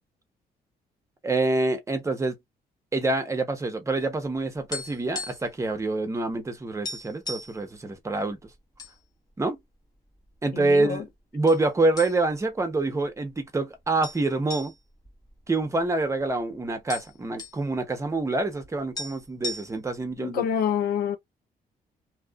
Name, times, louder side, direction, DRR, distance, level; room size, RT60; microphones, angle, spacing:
voice 1, 1.2-2.4 2.9-8.4 9.4-9.6 10.4-11.1 11.3-14.7 15.5-20.4, right 2 dB, 20° right, 0.8 m, -26 dB
sound 1, 4.7-5.6 5.9-6.0 6.4-6.5 6.8-7.6 8.3-8.9 9.3-9.5 10.2-10.8 11.5-11.6 12.0-12.5 12.8-12.9 14.0-16.1 16.4-16.5 16.7-17.6 18.6-18.7 19.0-20.0, left 2 dB, 25° left, 1.1 m, -37 dB
voice 2, 10.5-11.0 20.2-21.2, left 8 dB, 70° left, 0.6 m, -27 dB
2.8 x 2.4 x 2.3 m
cardioid pair, 125°, 16 cm